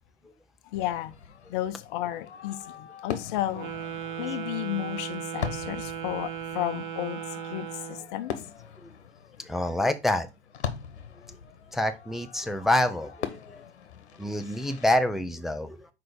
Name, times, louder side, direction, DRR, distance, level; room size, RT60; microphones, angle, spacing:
Fireworks, 0.7-14.9, left 7 dB, 70° left, 1.1 m, -41 dB
voice 1, 0.7-1.1 1.5-3.7 4.2-8.3, left 13 dB, 45° left, 0.7 m, -33 dB
Wind instrument woodwind instrument, 3.5-8.1, right 9 dB, 50° right, 1.4 m, -36 dB
voice 2, 9.4-10.3 11.7-13.6 14.2-15.9, left 1 dB, ahead, 0.4 m, -27 dB
5.9 x 4.8 x 4.7 m
figure-of-eight pair, 95°, 34 cm